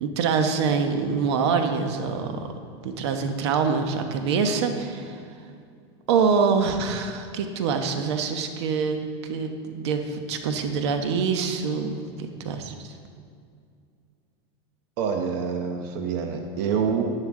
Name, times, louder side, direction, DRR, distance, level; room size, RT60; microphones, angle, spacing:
voice 1, 0.0-2.3 2.8-5.2 6.1-12.7, right 5 dB, 75° right, 6 dB, 1.1 m, -25 dB
voice 2, 15.0-17.1, right 6 dB, 55° right, 3 dB, 0.9 m, -26 dB
10.5 x 10.5 x 3.8 m, 2.2 s
supercardioid pair, 145°, 14 cm